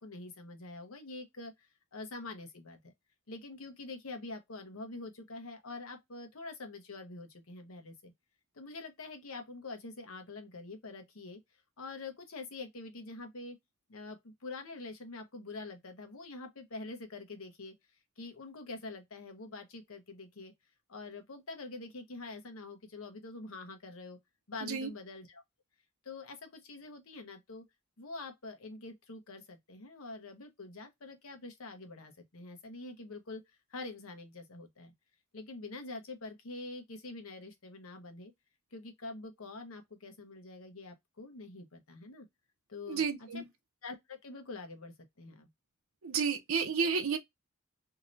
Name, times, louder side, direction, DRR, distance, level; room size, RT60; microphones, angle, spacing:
voice 1, 0.0-2.9 3.3-8.1 8.5-11.4 11.8-13.6 13.9-17.7 18.2-20.5 20.9-24.2 24.5-25.4 26.0-27.6 28.0-33.4 33.7-34.9 35.3-38.3 38.7-42.3 42.7-43.5 43.8-45.5, left 3 dB, 80° left, 0.9 m, -45 dB
voice 2, 42.9-43.4 46.0-47.2, right 5 dB, 80° right, 0.6 m, -31 dB
2.8 x 2.6 x 3.0 m
head